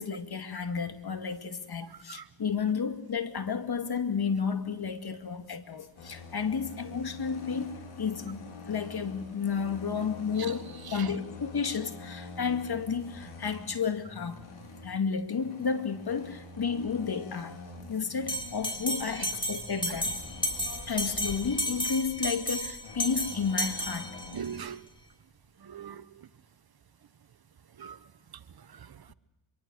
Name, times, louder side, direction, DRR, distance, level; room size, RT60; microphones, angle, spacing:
voice 1, 0.0-7.7 8.0-14.5 14.8-17.6 17.9-20.2 20.6-24.2, left 6 dB, 50° left, 2.3 m, -32 dB
sound 1, 6.0-24.4, left 3 dB, 85° left, 4.6 m, -46 dB
Bell, 18.3-24.5, equal, 10° left, 4.3 m, -33 dB
voice 2, 24.3-24.9 25.6-26.3 27.8-28.0 28.7-29.1, right 8 dB, 50° right, 1.2 m, -41 dB
24.0 x 23.5 x 6.4 m
cardioid pair, 55°, 48 cm